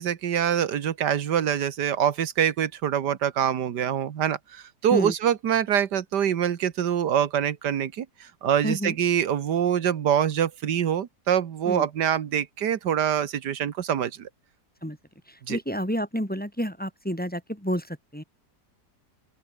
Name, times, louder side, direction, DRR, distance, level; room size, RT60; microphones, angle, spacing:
voice 1, 0.0-14.3 15.5-15.6, right 9 dB, 90° right, 1.8 m, -25 dB
voice 2, 8.6-8.9 11.7-11.9 14.8-15.0 15.5-18.2, equal, 5° left, 3.3 m, -29 dB
open air
omnidirectional pair, 1.7 m